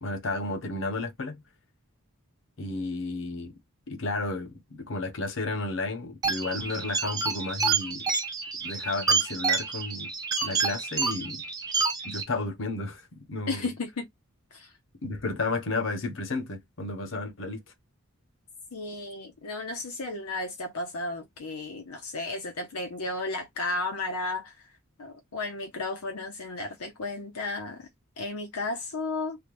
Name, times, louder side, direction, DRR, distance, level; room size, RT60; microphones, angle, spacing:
voice 1, 0.0-1.4 2.6-3.5 3.9-8.0 8.6-10.1 10.4-11.4 12.0-13.7 15.0-17.6, left 2 dB, 55° left, 0.7 m, -32 dB
sound 1, 6.2-12.2, right 5 dB, 15° right, 0.6 m, -28 dB
voice 2, 13.5-14.1 14.5-14.7 18.7-24.7 25.0-27.9 28.2-29.4, left 2 dB, 85° left, 0.7 m, -34 dB
3.4 x 2.2 x 2.9 m
head